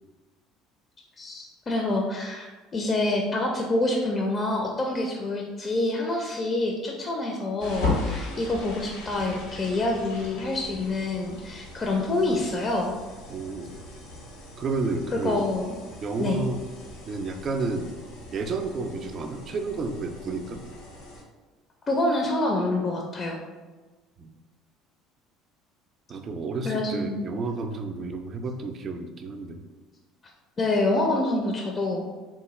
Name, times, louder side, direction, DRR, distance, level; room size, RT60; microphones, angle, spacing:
voice 1, 1.2-2.5 2.7-12.9 15.1-15.8 16.2-16.4 21.9-23.4 26.6-27.3 30.6-32.1, left 2 dB, 35° left, 0 dB, 0.5 m, -27 dB
sound 1, 7.6-21.2, left 3 dB, 80° left, 0.8 m, -37 dB
voice 2, 13.3-13.7 14.6-15.5 16.0-16.6 17.1-17.9 18.3-20.6 24.2-24.3 26.1-29.6, right 3 dB, 45° right, 6 dB, 0.4 m, -31 dB
3.6 x 2.2 x 3.1 m, 1.3 s
hypercardioid pair, 70°, 0 cm